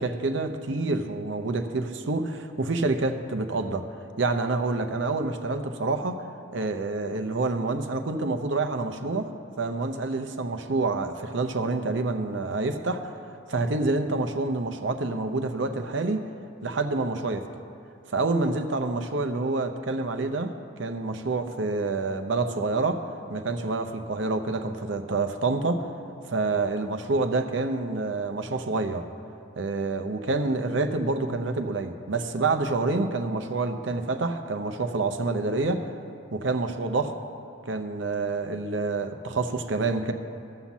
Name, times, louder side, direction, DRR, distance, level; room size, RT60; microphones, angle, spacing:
voice 1, 0.0-3.9 4.2-6.2 6.5-9.3 9.6-13.1 13.5-16.3 16.6-17.5 18.1-20.5 20.8-23.0 23.3-25.9 26.3-29.0 29.6-35.9 36.3-37.2 37.7-40.1, right 3 dB, 70° right, 7 dB, 0.7 m, -27 dB
13.0 x 5.8 x 7.1 m, 2.5 s
head